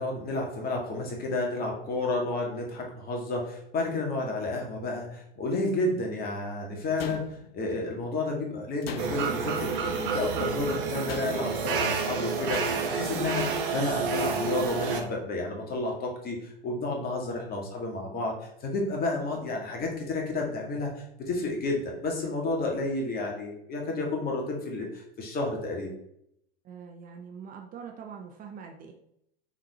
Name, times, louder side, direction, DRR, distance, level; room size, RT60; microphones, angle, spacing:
voice 1, 0.0-7.2 7.5-18.4 18.6-20.9 21.3-25.9, left 2 dB, 30° left, 0 dB, 2.1 m, -31 dB
sound 1, 7.0-7.7 8.8-9.5 11.1-11.7 12.5-13.1, left 7 dB, 85° left, 0.6 m, -40 dB
sound 2, 9.0-15.0, right 5 dB, 60° right, 1.3 m, -29 dB
voice 2, 26.6-28.9, right 6 dB, 30° right, 3 dB, 0.8 m, -43 dB
6.0 x 4.3 x 4.2 m, 0.74 s
figure-of-eight pair, 90°, 29 cm